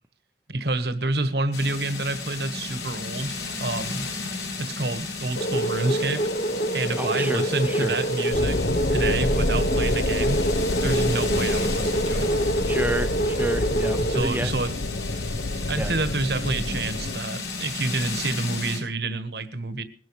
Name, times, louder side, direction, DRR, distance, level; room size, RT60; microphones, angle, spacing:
voice 1, 0.5-4.1 4.5-6.3 6.7-10.4 10.8-12.3 14.1-14.7 15.7-19.8, right 2 dB, 65° right, 1.5 m, -28 dB
sound 1, 1.5-18.8, left 4 dB, 85° left, 7.2 m, -34 dB
sound 2, 5.4-14.2, right 1 dB, 45° left, 1.3 m, -26 dB
voice 2, 7.0-8.0 12.7-14.6 15.8-16.0, right 1 dB, 10° right, 0.6 m, -30 dB
sound 3, 8.3-17.2, left 2 dB, 70° left, 0.8 m, -28 dB
21.5 x 12.5 x 3.2 m
head